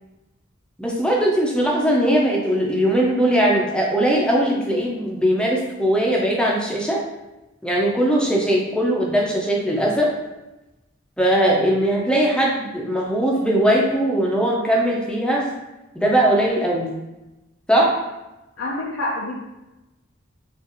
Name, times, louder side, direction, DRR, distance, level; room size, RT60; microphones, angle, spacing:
voice 1, 0.8-7.0 7.6-10.1 11.2-15.5 15.9-16.9 17.7-17.9, right 1 dB, 5° left, -2 dB, 0.6 m, -20 dB
voice 2, 18.6-19.4, left 2 dB, 85° left, -4 dB, 0.5 m, -27 dB
4.6 x 2.5 x 2.9 m, 1.0 s
head